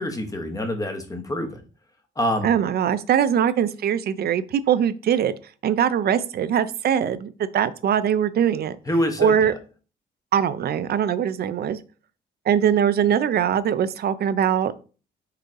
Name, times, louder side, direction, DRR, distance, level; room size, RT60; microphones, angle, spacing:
voice 1, 0.0-1.6 2.2-2.5 8.9-9.5, left 1 dB, 15° left, 5 dB, 1.0 m, -26 dB
voice 2, 2.4-5.3 5.6-8.8 9.2-9.5 10.3-11.8 12.5-14.7, right 9 dB, 55° right, 15 dB, 0.4 m, -22 dB
4.7 x 3.1 x 3.6 m, 0.37 s
cardioid pair, 90°, 20 cm